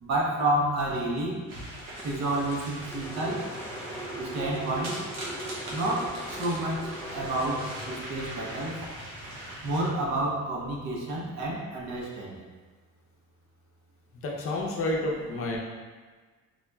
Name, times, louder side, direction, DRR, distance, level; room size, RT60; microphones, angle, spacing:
voice 1, 0.0-1.3 2.0-3.4 4.2-5.0 5.7-6.1 6.4-8.7 9.6-12.3, right 1 dB, 60° right, -3 dB, 0.8 m, -29 dB
sound 1, 1.5-9.9, right 1 dB, 85° right, 1.0 m, -40 dB
sound 2, 2.0-10.2, right 1 dB, 10° left, 0.3 m, -41 dB
voice 2, 14.2-15.6, left 1 dB, 45° left, -2 dB, 0.6 m, -29 dB
3.9 x 2.9 x 2.3 m, 1.4 s
cardioid pair, 130°, 30 cm